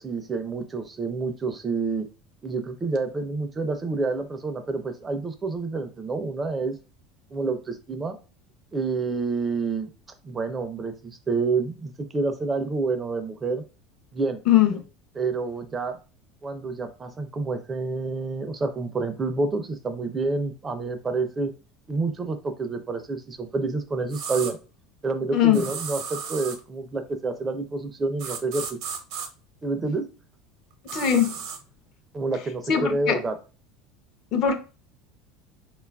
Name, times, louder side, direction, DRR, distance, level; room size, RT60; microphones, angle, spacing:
voice 1, 0.0-2.1 2.4-6.8 7.3-8.2 8.7-9.9 10.2-13.6 14.1-14.4 15.1-16.0 16.4-21.5 21.9-24.6 25.0-28.8 29.6-30.0 32.1-33.4, right 3 dB, 20° right, 0.4 m, -28 dB
voice 2, 14.5-14.8 25.3-25.6 30.9-31.3 32.7-33.2 34.3-34.5, left 10 dB, 55° left, 0.5 m, -20 dB
sound 1, 24.1-24.5 25.5-26.6 28.2-29.3 30.9-31.6, right 6 dB, 65° right, 0.6 m, -34 dB
3.6 x 2.3 x 2.3 m
supercardioid pair, 125°, 0 cm